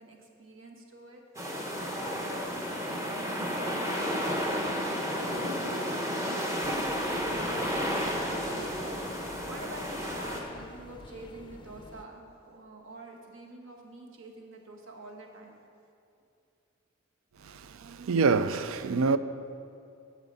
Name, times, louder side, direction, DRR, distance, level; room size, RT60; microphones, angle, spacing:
voice 1, 0.0-4.7 5.6-9.0 9.5-15.5 17.3-17.4, right 2 dB, 70° right, 1.3 m, -47 dB
sound 1, 1.3-10.4, equal, 15° right, 1.0 m, -32 dB
sound 2, 6.6-12.1, left 2 dB, 25° left, 0.5 m, -47 dB
voice 2, 17.5-19.2, right 4 dB, 90° right, 0.4 m, -26 dB
11.0 x 7.3 x 5.5 m
head